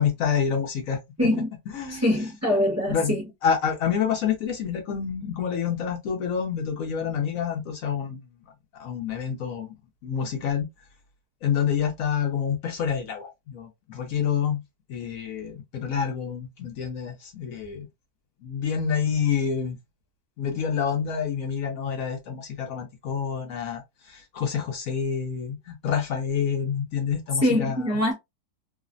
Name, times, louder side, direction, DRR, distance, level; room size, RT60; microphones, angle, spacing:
voice 1, 0.0-1.0 1.7-2.1 2.9-3.2 3.4-8.2 8.7-9.7 10.0-10.7 11.4-14.6 14.9-17.9 18.4-19.8 20.4-27.8, left 7 dB, 70° left, 1.0 m, -27 dB
voice 2, 1.2-1.5 1.9-3.3 27.4-28.1, left 1 dB, 15° right, 0.7 m, -23 dB
3.1 x 2.0 x 2.4 m
omnidirectional pair, 1.7 m